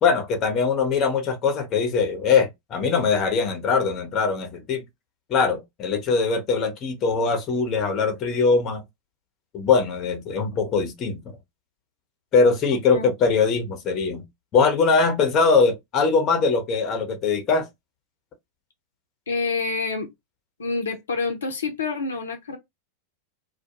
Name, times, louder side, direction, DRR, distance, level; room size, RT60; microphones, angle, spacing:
voice 1, 0.0-4.8 5.3-8.8 9.5-11.2 12.3-14.2 14.5-17.7, left 5 dB, 35° left, 0.7 m, -21 dB
voice 2, 19.3-20.1 20.6-22.6, left 4 dB, 70° left, 0.5 m, -27 dB
2.2 x 2.1 x 2.8 m
figure-of-eight pair, 90°, 0 cm